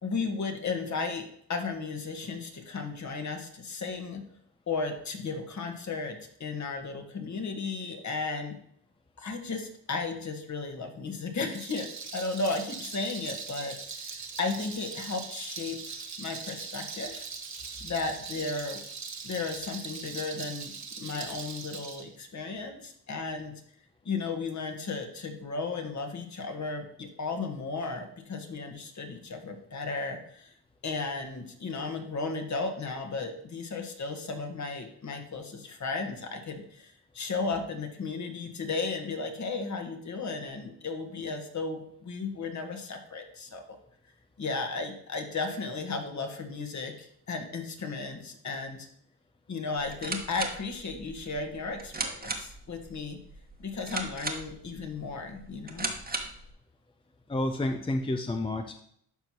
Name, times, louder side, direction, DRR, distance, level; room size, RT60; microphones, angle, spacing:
voice 1, 0.0-4.2 4.7-8.6 9.2-17.2 17.8-18.8 19.2-23.5 24.0-30.5 30.8-43.8 44.4-48.9 49.5-53.2 53.6-55.9, left 4 dB, 40° left, 4 dB, 1.5 m, -35 dB
Rattle, 11.4-22.0, right 5 dB, 40° right, 1.4 m, -41 dB
sound 1, 49.8-56.5, right 3 dB, 20° right, 1.3 m, -38 dB
voice 2, 57.3-58.7, left 1 dB, 15° left, 5 dB, 0.6 m, -29 dB
12.0 x 4.5 x 3.0 m, 0.66 s
supercardioid pair, 70°, 42 cm